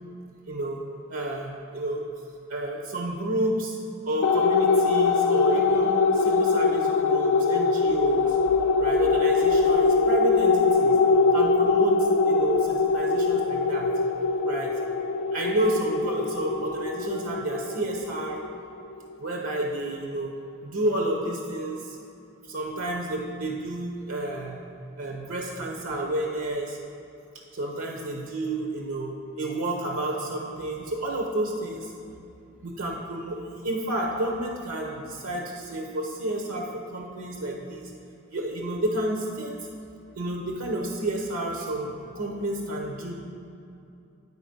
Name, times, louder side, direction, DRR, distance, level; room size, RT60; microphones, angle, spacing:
voice 1, 0.4-0.8 1.1-2.0 2.5-3.8 4.1-8.4 8.8-11.0 11.3-13.9 14.4-14.7 15.3-18.4 19.2-20.3 20.6-22.0 22.5-24.6 25.0-26.8 27.5-31.9 32.6-37.9 38.3-39.5 40.2-43.1, right 1 dB, 80° right, 0 dB, 0.8 m, -30 dB
sound 1, 4.2-19.0, left 4 dB, 70° left, 0.3 m, -23 dB
9.8 x 4.4 x 5.2 m, 2.7 s
head